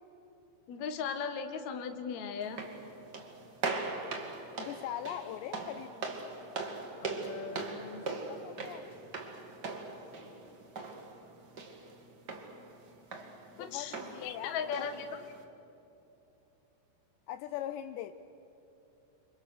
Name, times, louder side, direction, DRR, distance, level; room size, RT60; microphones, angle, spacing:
voice 1, 0.7-2.6 7.0-8.0 13.6-15.1, left 6 dB, 55° left, 7 dB, 2.2 m, -38 dB
sound 1, 2.4-15.4, right 3 dB, 40° right, 1.5 m, -41 dB
voice 2, 4.6-6.1 8.1-8.8 13.5-14.9 17.3-18.1, left 11 dB, 80° left, 11 dB, 2.7 m, -41 dB
30.0 x 26.5 x 6.5 m, 2.9 s
omnidirectional pair, 5.4 m